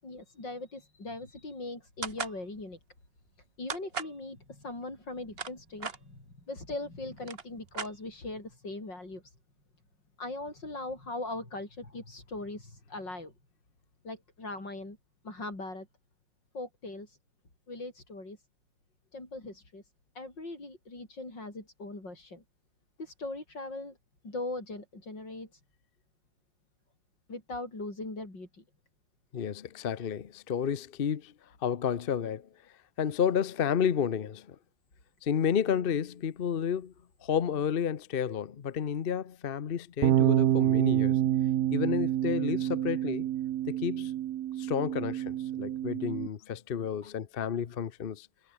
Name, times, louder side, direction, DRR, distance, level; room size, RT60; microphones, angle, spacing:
voice 1, 0.0-2.8 3.6-9.4 10.2-13.3 14.0-15.0 15.2-15.9 16.5-17.2 17.7-18.4 19.1-19.8 20.1-22.4 23.0-24.0 24.2-25.6 27.3-28.6 47.0-47.1, left 2 dB, 80° left, 8.1 m, -40 dB
sound 1, 2.0-2.4 3.7-4.2 5.1-6.0 6.8-6.9 7.1-8.3, right 5 dB, 35° right, 1.5 m, -37 dB
voice 2, 29.3-31.3 31.6-32.5 33.0-34.6 35.2-36.9 37.2-41.2 41.7-43.3 43.7-44.1 44.6-48.3, left 8 dB, 45° left, 0.7 m, -31 dB
sound 2, 40.0-46.3, right 12 dB, 65° right, 1.1 m, -28 dB
omnidirectional pair, 1.9 m